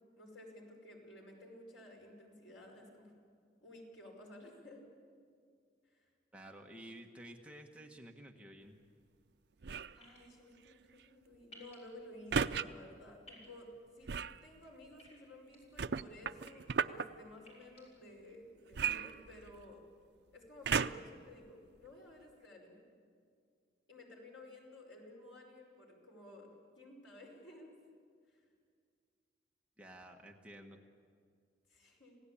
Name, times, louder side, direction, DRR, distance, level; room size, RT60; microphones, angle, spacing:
voice 1, 0.2-3.1 3.6-4.8 5.8-6.1 9.9-13.7 14.0-14.1 14.4-19.8 20.3-22.9 23.9-27.8 28.3-28.4 31.7-32.2, left 1 dB, 90° left, 0 dB, 5.3 m, -54 dB
voice 2, 6.3-8.8 29.8-30.8, right 1 dB, 5° right, 1 dB, 1.4 m, -52 dB
sound 1, 9.6-10.0 12.3-12.7 14.1-14.4 15.8-17.1 18.7-19.7 20.6-21.2 21.9-22.0, right 6 dB, 65° right, 0.5 m, -34 dB
sound 2, 10.0-10.2 11.5-11.8 13.3-13.5 15.0-15.6 16.2-16.5 17.4-17.8, equal, 35° left, 6.0 m, -57 dB
27.5 x 17.0 x 8.6 m, 2.2 s
head